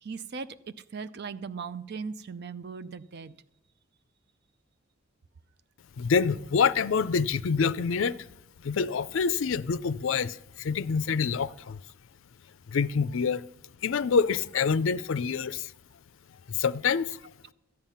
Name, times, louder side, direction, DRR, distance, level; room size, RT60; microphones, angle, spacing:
voice 1, 0.0-3.3, right 5 dB, 55° right, 0.5 m, -38 dB
voice 2, 6.0-8.3 8.6-11.8 12.7-13.5 13.8-15.7 16.5-17.2, left 5 dB, 65° left, 0.4 m, -26 dB
13.5 x 9.0 x 5.6 m
head